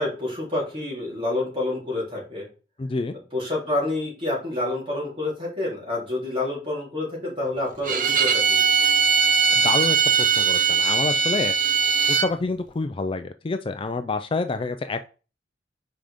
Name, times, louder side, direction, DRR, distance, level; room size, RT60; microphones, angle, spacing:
voice 1, 0.0-2.5 3.3-8.6, left 2 dB, 30° right, -4 dB, 3.6 m, -28 dB
voice 2, 2.8-3.2 9.6-11.5 12.1-15.1, left 3 dB, 30° left, 8 dB, 0.4 m, -28 dB
Bowed string instrument, 7.8-12.3, right 6 dB, 45° right, 0.8 m, -20 dB
5.7 x 5.0 x 5.1 m, 0.36 s
head